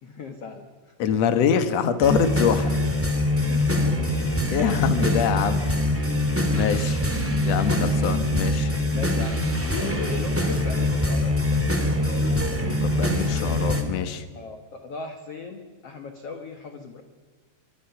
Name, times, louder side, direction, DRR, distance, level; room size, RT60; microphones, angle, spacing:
voice 1, 0.0-0.9 3.3-4.2 5.8-5.9 8.9-11.4 14.3-17.0, left 4 dB, 90° left, 6 dB, 1.3 m, -38 dB
voice 2, 1.0-2.8 4.5-5.7 6.5-7.0 7.4-8.7 12.6-14.2, left 7 dB, 70° left, 9 dB, 1.6 m, -24 dB
sound 1, 2.0-13.8, left 1 dB, 10° right, 0.5 m, -24 dB
24.0 x 23.5 x 5.9 m, 1.4 s
omnidirectional pair, 4.9 m